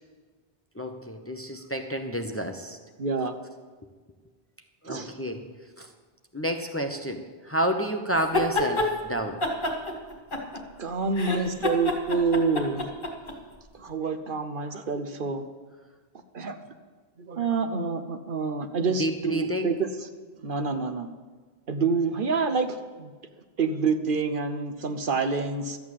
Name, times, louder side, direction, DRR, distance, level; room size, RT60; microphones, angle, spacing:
voice 1, 0.8-2.8 4.8-5.4 5.8-5.9 6.3-9.4 19.0-19.7, right 1 dB, 15° left, 5 dB, 0.8 m, -30 dB
voice 2, 3.0-3.3 4.8-5.1 10.8-12.9 13.7-15.4 16.3-16.6 17.2-20.1 20.4-21.1 21.7-23.1 23.6-25.8, right 4 dB, 60° right, 8 dB, 0.9 m, -27 dB
sound 1, 8.2-8.9 9.4-10.8 11.1-13.3, left 2 dB, 55° left, 2.3 m, -27 dB
13.0 x 8.5 x 7.4 m, 1.4 s
omnidirectional pair, 1.0 m